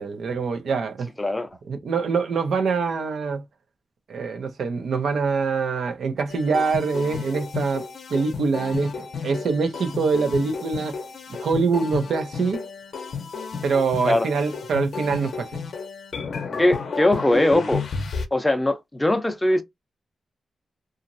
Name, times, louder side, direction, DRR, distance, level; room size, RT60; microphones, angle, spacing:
voice 1, 0.0-1.1 1.7-3.4 4.1-7.8 8.1-8.9 9.2-11.0 11.4-12.6 13.6-15.6, right 5 dB, 75° right, 0.7 m, -24 dB
voice 2, 1.2-1.5 14.0-14.3 16.6-17.8 18.3-19.6, left 1 dB, 10° left, 0.5 m, -20 dB
sound 1, 6.3-18.3, left 5 dB, 60° left, 0.6 m, -32 dB
2.9 x 2.4 x 2.5 m
wide cardioid pair, 140°, 0 cm